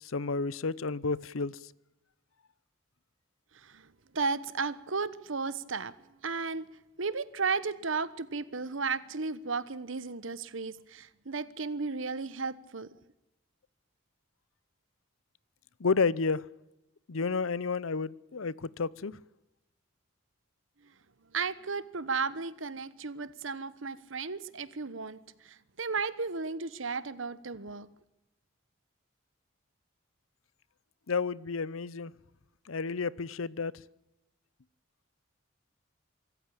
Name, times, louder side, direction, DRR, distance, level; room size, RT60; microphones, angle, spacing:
voice 1, 0.0-1.7 15.8-16.4 17.1-19.2 31.1-32.1 32.7-33.7, left 4 dB, 85° left, 0.7 m, -31 dB
voice 2, 4.1-5.9 6.2-6.6 7.0-12.9 21.3-25.2 25.4-27.9, right 4 dB, 75° right, 1.2 m, -34 dB
24.5 x 14.0 x 8.9 m
head